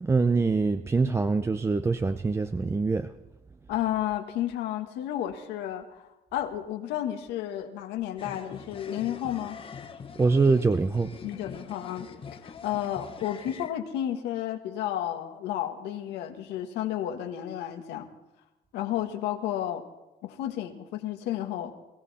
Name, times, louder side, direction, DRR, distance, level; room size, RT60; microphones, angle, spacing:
voice 1, 0.0-3.1 10.2-11.1, right 4 dB, 15° right, 10 dB, 0.5 m, -24 dB
voice 2, 3.7-9.6 11.2-12.1 12.4-18.1 18.7-19.8 20.2-21.7, left 11 dB, 90° left, 6 dB, 1.6 m, -32 dB
sound 1, 8.2-13.7, left 5 dB, 35° left, 1.1 m, -43 dB
22.0 x 14.5 x 4.2 m, 1.0 s
cardioid pair, 110°, 17 cm